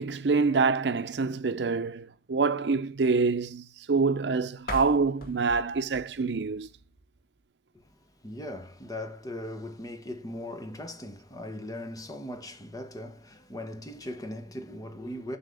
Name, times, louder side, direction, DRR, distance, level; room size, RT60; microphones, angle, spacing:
voice 1, 0.0-6.7, right 4 dB, 75° right, 0.6 m, -26 dB
sound 1, 4.6-7.4, left 1 dB, 55° left, 2.1 m, -42 dB
voice 2, 8.2-15.4, left 1 dB, 20° left, 1.0 m, -39 dB
7.8 x 5.7 x 3.4 m
head